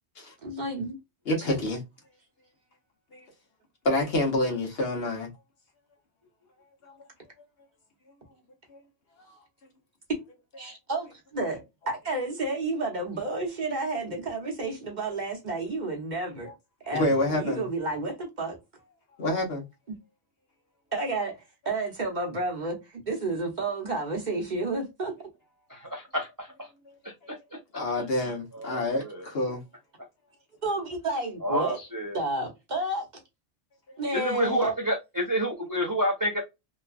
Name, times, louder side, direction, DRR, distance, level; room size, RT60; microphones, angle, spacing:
voice 1, 0.4-1.0 1.5-1.6 10.6-11.6 11.9-16.5 16.9-18.6 20.9-21.3 21.6-22.8 23.1-25.2 30.6-31.8 32.1-33.1 34.0-34.7, right 2 dB, 45° right, 0.9 m, -31 dB
voice 2, 1.2-1.8 3.1-3.2 3.8-5.3 6.8-6.9 8.7-8.8 9.3-9.4 10.6-10.7 16.4-16.5 16.8-17.7 19.2-19.6 26.9-27.0 27.2-27.4 27.7-29.6, left 1 dB, 65° left, 1.2 m, -28 dB
voice 3, 25.7-26.7 27.0-27.4 28.2-29.3 31.4-32.2 34.1-36.4, equal, 25° right, 0.4 m, -29 dB
3.0 x 2.2 x 2.4 m
omnidirectional pair, 1.1 m